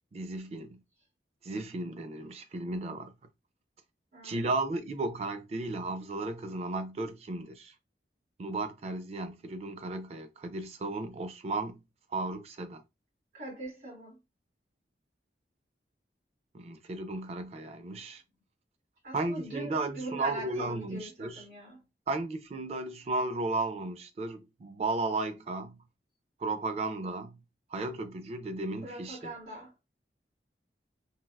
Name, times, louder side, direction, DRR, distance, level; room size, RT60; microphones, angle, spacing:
voice 1, 0.1-0.8 1.4-3.1 4.2-7.7 8.4-11.8 12.1-12.8 16.5-18.2 19.1-21.4 22.1-25.8 26.4-27.4 27.7-29.3, right 2 dB, 35° right, 0.3 m, -34 dB
voice 2, 4.1-4.4 13.3-14.2 19.0-21.8 28.8-29.7, right 2 dB, 70° right, 1.6 m, -41 dB
3.3 x 2.2 x 2.2 m
head